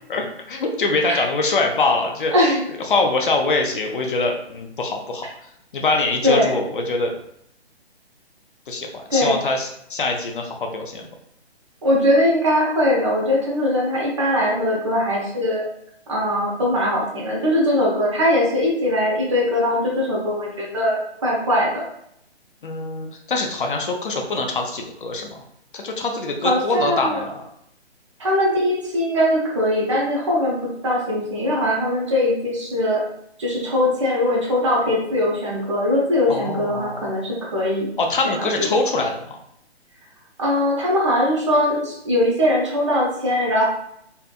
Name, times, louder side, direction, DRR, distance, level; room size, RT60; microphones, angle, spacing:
voice 1, 0.1-2.3 2.9-5.3 5.7-7.1 8.7-11.1 22.6-25.4 25.7-27.5 36.3-37.1 38.0-39.4, left 3 dB, 50° left, 2 dB, 0.4 m, -24 dB
voice 2, 2.3-2.7 6.2-6.6 9.1-9.3 11.8-15.6 16.1-21.0 21.2-21.8 26.4-27.2 28.2-33.0 33.4-37.9 38.2-38.7 40.4-43.6, left 1 dB, 30° right, -3 dB, 0.5 m, -21 dB
2.6 x 2.4 x 2.2 m, 0.74 s
figure-of-eight pair, 140°, 33 cm